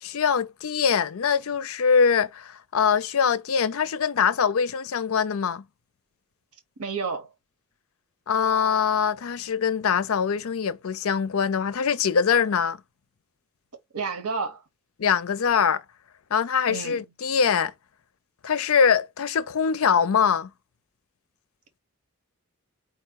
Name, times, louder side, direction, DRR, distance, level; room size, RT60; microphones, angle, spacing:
voice 1, 0.0-5.6 8.3-12.8 15.0-15.8 16.3-17.7 18.4-20.5, left 6 dB, 70° left, 0.5 m, -23 dB
voice 2, 6.8-7.3 13.9-14.6 16.7-17.0, right 4 dB, 90° right, 1.0 m, -30 dB
5.0 x 2.2 x 4.6 m
head